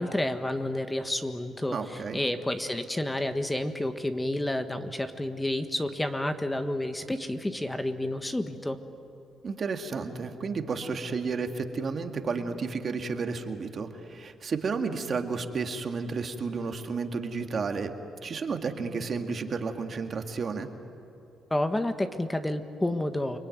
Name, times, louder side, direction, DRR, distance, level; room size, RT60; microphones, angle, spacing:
voice 1, 0.0-8.8 21.5-23.4, left 1 dB, 10° left, 8 dB, 1.4 m, -30 dB
voice 2, 1.7-2.2 9.4-17.9 18.2-20.7, right 4 dB, 45° right, 5 dB, 2.1 m, -32 dB
29.5 x 21.5 x 9.4 m, 2.8 s
cardioid pair, 90°, 0 cm